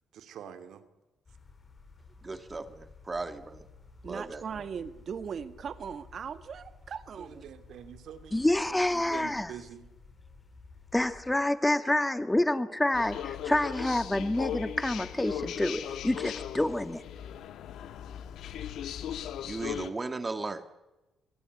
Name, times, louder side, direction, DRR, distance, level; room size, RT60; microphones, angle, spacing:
voice 1, 0.1-0.8 7.1-9.9, right 9 dB, 75° right, 10 dB, 2.7 m, -46 dB
farmers driveby harvest, 1.2-11.4, left 4 dB, 35° left, 5.3 m, -54 dB
voice 2, 2.2-3.6 4.0-4.4 19.4-20.6, right 3 dB, 25° right, 10 dB, 2.1 m, -36 dB
voice 3, 4.0-7.4, right 7 dB, 55° right, 12 dB, 1.6 m, -39 dB
voice 4, 8.3-9.5 10.9-17.0, left 1 dB, 10° left, 11 dB, 1.7 m, -28 dB
sound 1, 12.9-19.9, left 9 dB, 80° left, 1.6 m, -38 dB
25.5 x 18.5 x 9.7 m, 1.1 s
cardioid pair, 90°, 0 cm